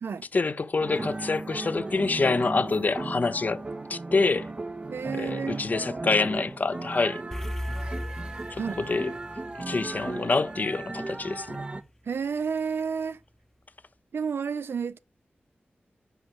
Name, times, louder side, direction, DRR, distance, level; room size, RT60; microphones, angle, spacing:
voice 1, 0.3-4.5 5.2-7.2 8.5-9.1 9.7-11.6, left 3 dB, 45° left, 0.5 m, -26 dB
sound 1, 0.8-11.8, right 2 dB, 30° right, 0.5 m, -36 dB
voice 2, 4.9-5.6 8.6-8.8 12.0-13.2 14.1-15.0, right 6 dB, 85° right, 0.4 m, -31 dB
sound 2, 7.3-11.8, equal, 10° left, 0.7 m, -38 dB
5.6 x 5.5 x 5.3 m
wide cardioid pair, 100°, 4 cm